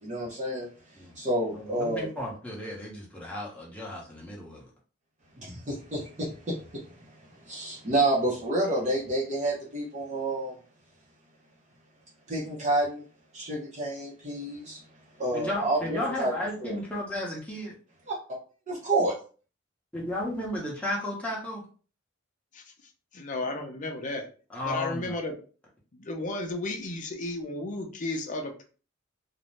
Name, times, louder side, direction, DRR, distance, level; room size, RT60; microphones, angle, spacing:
voice 1, 0.0-0.7 1.2-2.1 5.4-6.8 7.2-10.6 12.3-13.0 13.3-14.8 15.2-16.3 16.6-16.8 18.1-18.2 18.7-19.1, right 1 dB, 35° right, -5 dB, 0.7 m, -29 dB
voice 2, 1.5-4.6 15.3-17.7 19.9-21.6 24.5-25.2, left 1 dB, 5° left, -4 dB, 0.9 m, -34 dB
voice 3, 23.1-24.3 24.6-25.4 25.9-28.6, left 2 dB, 40° left, 3 dB, 0.5 m, -33 dB
2.5 x 2.1 x 3.1 m, 0.38 s
head